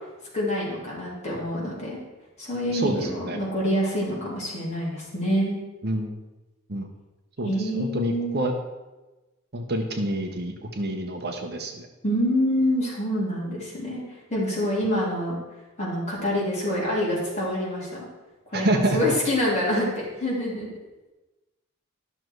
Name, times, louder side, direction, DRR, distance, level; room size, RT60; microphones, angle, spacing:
voice 1, 0.3-2.0 2.4-5.6 7.4-8.4 12.0-14.0 14.3-15.4 15.8-18.0 18.5-20.7, equal, 30° left, -6 dB, 3.2 m, -26 dB
voice 2, 2.7-3.4 5.8-6.2 6.7-6.9 7.4-8.5 9.5-11.9 18.5-19.0, right 1 dB, 45° right, 4 dB, 0.9 m, -27 dB
11.5 x 6.5 x 4.6 m, 1.1 s
head